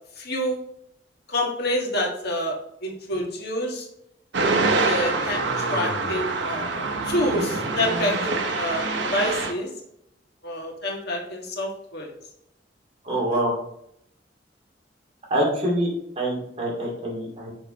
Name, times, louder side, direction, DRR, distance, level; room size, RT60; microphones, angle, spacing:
voice 1, 0.2-0.6 1.3-2.6 2.8-3.8 4.6-6.8 7.0-9.7 10.4-12.1 13.3-13.4, left 1 dB, 60° left, -1 dB, 1.7 m, -27 dB
sound 1, 4.3-9.5, right 3 dB, 85° right, 0.9 m, -25 dB
voice 2, 13.0-13.5 15.3-17.5, right 1 dB, 35° right, -3 dB, 2.4 m, -25 dB
6.7 x 4.5 x 4.1 m, 0.76 s
head